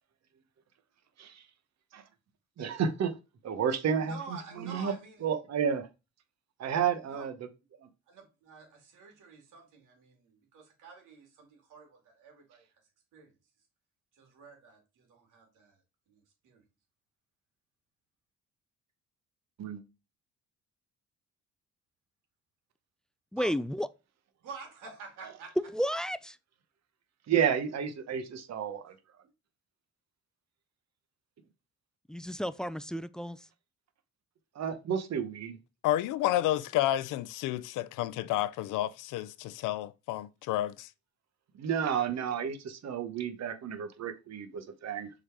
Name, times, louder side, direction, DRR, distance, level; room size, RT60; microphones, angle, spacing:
voice 1, 2.6-3.2 3.4-4.9 5.2-5.9 6.6-7.4 7.8-7.9 19.6-19.8 25.2-25.3 27.3-28.9 34.5-35.6 41.6-45.1, right 7 dB, 60° right, 1.1 m, -31 dB
voice 2, 4.0-5.2 7.0-7.3 8.1-12.7 13.1-13.3 14.1-15.8 16.1-16.6 23.4-23.5 24.4-25.6, right 4 dB, 85° right, 2.5 m, -48 dB
voice 3, 23.3-23.9 25.6-26.4 32.1-33.4, equal, ahead, 0.3 m, -32 dB
voice 4, 35.8-40.9, left 14 dB, 90° left, 0.5 m, -30 dB
6.3 x 4.0 x 4.7 m
cardioid pair, 90°, 30 cm